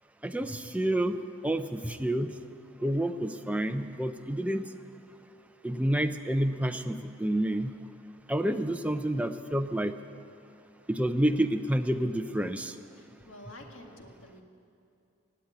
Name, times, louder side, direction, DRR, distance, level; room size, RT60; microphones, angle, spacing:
voice 1, 0.2-1.2 1.4-2.3 2.8-4.6 5.6-7.7 8.3-9.9 10.9-12.7, right 1 dB, 5° right, 7 dB, 0.5 m, -29 dB
voice 2, 12.9-14.4, left 1 dB, 85° left, 2 dB, 1.8 m, -49 dB
18.5 x 8.1 x 9.2 m, 2.6 s
head